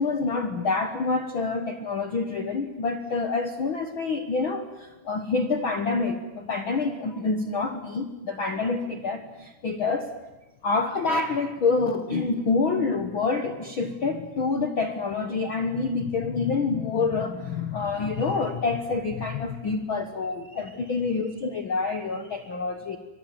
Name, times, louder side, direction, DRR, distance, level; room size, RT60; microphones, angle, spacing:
voice 1, 0.0-10.1 10.6-23.0, left 4 dB, 85° left, 7 dB, 1.1 m, -27 dB
25.0 x 23.0 x 9.2 m, 1.1 s
omnidirectional pair, 4.5 m